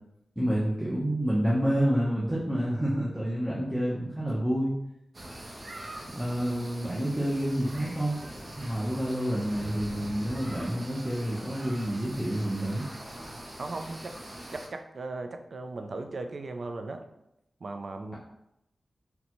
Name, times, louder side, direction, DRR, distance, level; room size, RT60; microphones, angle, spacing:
voice 1, 0.4-4.7 6.1-8.2 8.6-12.8, equal, 5° right, -6 dB, 0.7 m, -28 dB
sound 1, 5.1-14.7, right 1 dB, 45° right, 0.7 m, -42 dB
voice 2, 13.6-14.2 14.5-17.1 17.6-18.1, right 3 dB, 65° right, 6 dB, 0.3 m, -37 dB
4.0 x 2.2 x 2.9 m, 0.83 s
wide cardioid pair, 75°, 0 cm